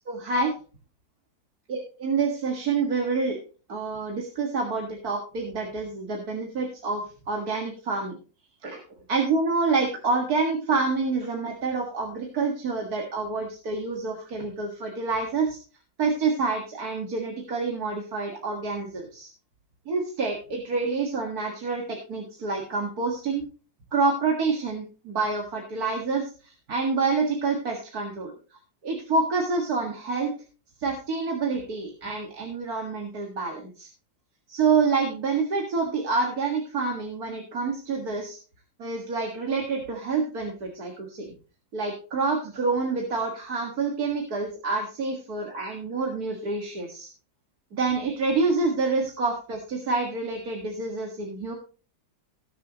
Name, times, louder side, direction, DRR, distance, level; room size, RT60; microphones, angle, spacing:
voice 1, 0.1-0.5 1.7-3.4 3.7-8.2 8.6-8.8 9.1-15.6 16.0-19.3 19.9-23.4 23.9-28.3 28.8-30.3 30.8-33.9 34.5-38.4 38.8-41.3 41.7-47.1 47.7-51.5, right 4 dB, 55° right, 1 dB, 2.3 m, -27 dB
19.0 x 6.9 x 3.0 m, 0.36 s
omnidirectional pair, 2.0 m